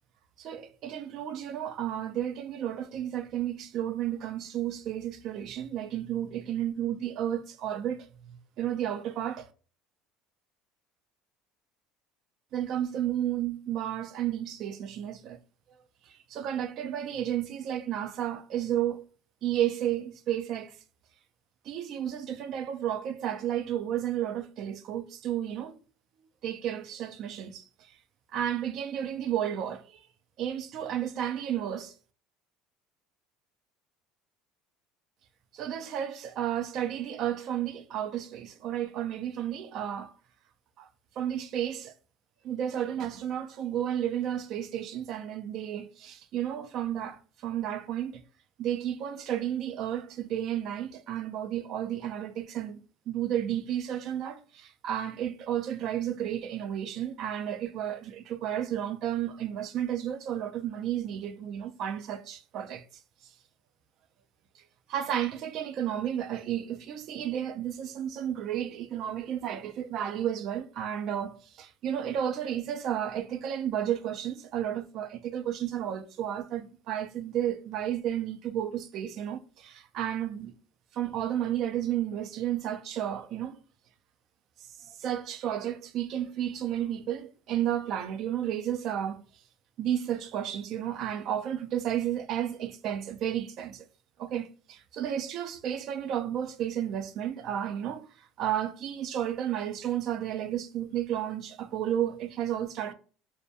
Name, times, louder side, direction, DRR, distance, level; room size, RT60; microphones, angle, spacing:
voice 1, 0.4-9.5 12.5-15.4 16.3-19.1 19.4-20.7 21.7-25.8 26.4-27.6 28.3-30.0 30.4-31.9 35.5-40.1 40.8-40.9 41.2-41.9 42.4-48.2 48.6-52.8 53.1-62.8 64.9-80.5 80.9-83.6 84.9-89.2 89.8-93.8 94.2-98.1 98.4-102.9, right 10 dB, 55° right, 0.3 m, -32 dB
2.1 x 2.1 x 2.7 m
supercardioid pair, 110°, 0 cm